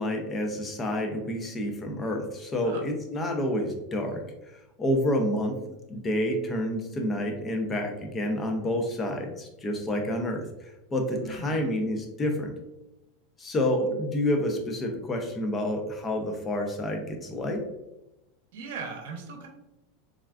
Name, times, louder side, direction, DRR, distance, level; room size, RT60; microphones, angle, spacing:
voice 1, 0.0-4.2 4.8-12.5 13.4-17.6, left 1 dB, 20° left, 3 dB, 0.5 m, -29 dB
voice 2, 11.2-11.7 18.5-19.5, right 4 dB, 75° right, 2 dB, 0.7 m, -39 dB
3.4 x 2.3 x 2.3 m, 0.94 s
supercardioid pair, 140°, 0 cm